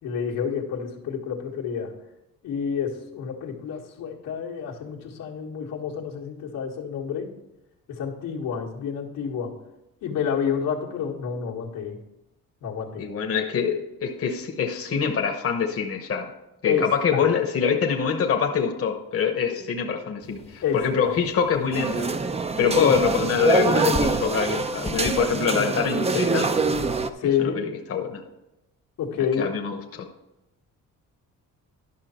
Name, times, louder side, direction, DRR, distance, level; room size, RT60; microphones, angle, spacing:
voice 1, 0.0-1.9 2.4-7.3 7.9-9.5 10.0-12.0 12.6-13.1 16.6-17.2 19.5-19.6 20.6-21.2 22.8-23.0 27.2-27.6 29.0-29.5, left 7 dB, 90° left, -3 dB, 1.8 m, -29 dB
voice 2, 13.0-16.3 16.6-22.1 22.6-26.5 27.2-28.2 29.4-30.1, left 6 dB, 45° left, 3 dB, 1.0 m, -25 dB
sound 1, 20.2-25.3, left 2 dB, 20° left, 0.8 m, -39 dB
sound 2, 21.7-27.1, right 3 dB, 20° right, 0.5 m, -24 dB
11.5 x 6.0 x 4.4 m, 0.94 s
cardioid pair, 110°, 32 cm